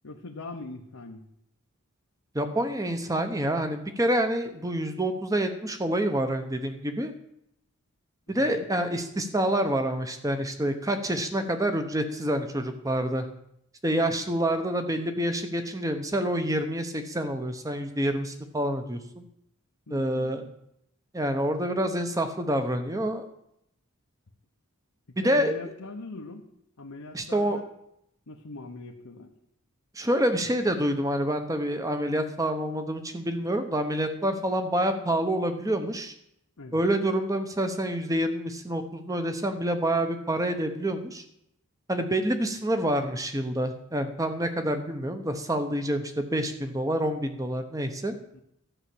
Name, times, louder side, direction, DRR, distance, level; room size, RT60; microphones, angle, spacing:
voice 1, 0.0-1.2 8.3-8.6 19.9-20.5 25.2-26.4 26.8-27.6 28.3-29.3 36.6-36.8 48.3-48.4, left 2 dB, 85° left, 0 dB, 1.1 m, -42 dB
voice 2, 2.3-7.1 8.3-13.3 13.8-19.2 19.9-20.4 21.1-23.2 25.2-25.5 27.1-27.6 30.0-36.1 36.7-41.2 41.9-48.2, right 1 dB, 15° right, 8 dB, 1.0 m, -27 dB
12.5 x 5.8 x 8.5 m, 0.77 s
head